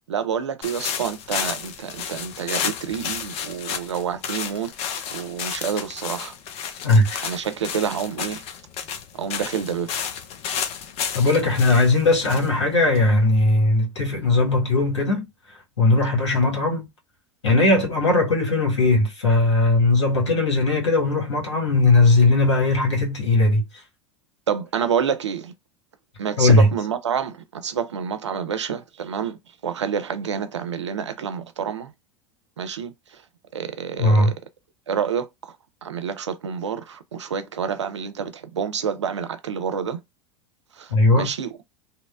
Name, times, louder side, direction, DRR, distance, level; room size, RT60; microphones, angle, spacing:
voice 1, 0.1-4.7 5.1-6.3 7.2-8.4 9.1-10.0 24.5-25.5 26.2-29.4 29.6-31.9 32.6-33.2 33.5-34.3 34.9-35.5 35.8-40.0 40.8-41.5, right 7 dB, 85° right, 0.4 m, -28 dB
sound 1, 0.6-13.4, left 8 dB, 45° left, 0.6 m, -32 dB
voice 2, 6.8-7.2 11.1-15.3 15.8-16.9 17.4-23.6 26.4-26.7 34.0-34.3 40.9-41.3, left 2 dB, 80° left, 1.3 m, -18 dB
2.8 x 2.0 x 2.3 m
hypercardioid pair, 85°, 14 cm